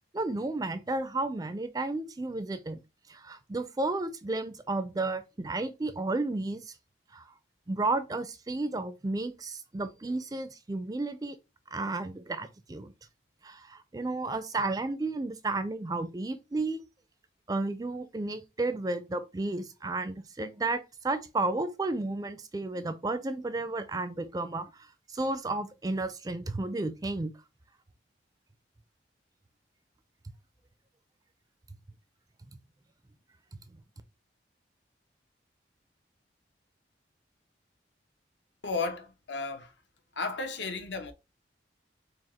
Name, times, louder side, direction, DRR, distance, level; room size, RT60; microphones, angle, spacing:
voice 1, 0.1-2.8 3.1-6.7 7.1-7.3 7.7-11.4 11.7-12.9 13.4-16.8 17.5-24.7 25.1-27.3, right 2 dB, 20° right, 0.4 m, -32 dB
voice 2, 38.6-39.7 40.2-41.1, left 3 dB, 75° left, 0.7 m, -34 dB
4.8 x 2.1 x 4.1 m
head